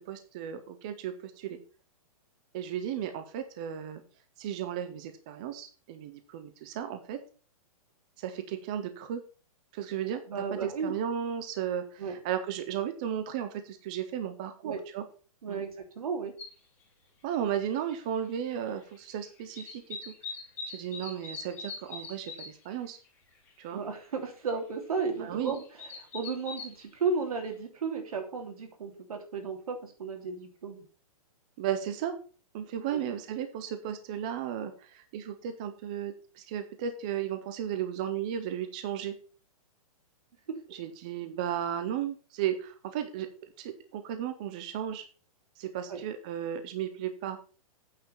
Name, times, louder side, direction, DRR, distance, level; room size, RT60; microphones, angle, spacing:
voice 1, 0.1-1.6 2.5-4.0 4.4-7.2 8.2-9.2 9.7-10.2 10.5-15.0 15.5-15.6 17.2-20.1 20.6-23.0 23.6-23.8 25.2-25.5 31.6-32.2 32.5-39.1 40.7-43.3 43.6-45.0 45.6-47.4, right 9 dB, 10° right, 9 dB, 0.3 m, -35 dB
voice 2, 10.3-10.9 12.0-12.2 14.6-14.8 15.4-16.3 23.7-25.6 26.0-30.8 32.9-33.0 45.9-46.0, right 5 dB, 70° right, 5 dB, 3.1 m, -34 dB
sound 1, 16.4-16.5 17.9-18.0 18.3-19.1 19.4-22.7 23.1-23.2 23.3-23.7 24.1-24.2 25.1-26.8 27.4-27.5, left 4 dB, 10° left, 2.5 m, -42 dB
8.7 x 5.6 x 6.8 m, 0.38 s
hypercardioid pair, 180°, 19 cm